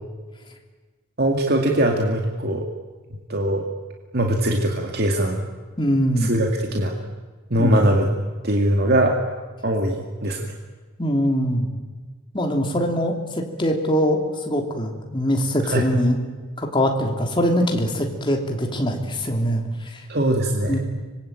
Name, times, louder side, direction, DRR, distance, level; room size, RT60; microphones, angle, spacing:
voice 1, 1.2-2.6 3.3-3.6 4.1-5.5 6.2-6.9 7.5-8.1 8.4-9.1 9.6-10.5 15.6-15.8 20.1-20.8, right 1 dB, 45° right, 1 dB, 2.2 m, -21 dB
voice 2, 5.8-6.3 7.6-7.8 11.0-11.7 12.3-16.2 16.6-20.0 20.7-20.8, equal, 20° left, 2 dB, 3.1 m, -22 dB
25.5 x 21.0 x 9.0 m, 1.3 s
head